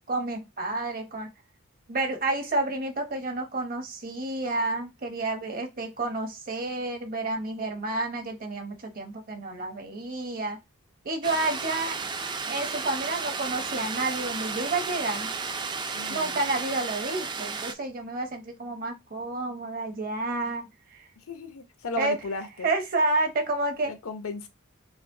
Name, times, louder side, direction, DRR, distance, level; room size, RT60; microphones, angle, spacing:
voice 1, 0.1-1.3 1.9-10.6 11.0-12.0 12.5-15.3 16.1-20.7 22.0-22.2 22.6-23.9, right 2 dB, 45° right, 0.8 m, -30 dB
sound 1, 11.2-17.7, right 4 dB, 20° right, 0.3 m, -33 dB
voice 2, 15.9-16.4 21.3-22.7 23.9-24.5, left 3 dB, 75° left, 0.6 m, -35 dB
4.9 x 2.1 x 2.6 m
head